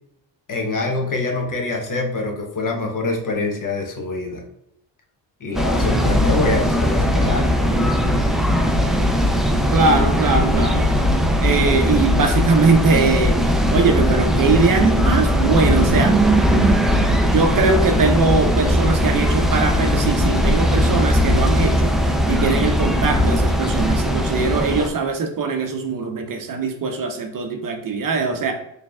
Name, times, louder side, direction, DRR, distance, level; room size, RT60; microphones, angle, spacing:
voice 1, 0.5-4.4 5.4-7.6, left 3 dB, 45° left, 1 dB, 0.9 m, -25 dB
sound 1, 5.5-24.9, equal, ahead, 0.3 m, -18 dB
voice 2, 9.7-10.9 11.4-13.4 13.7-16.1 17.3-28.5, right 4 dB, 45° right, 5 dB, 0.7 m, -21 dB
4.7 x 3.3 x 2.3 m, 0.81 s
cardioid pair, 95°, 45 cm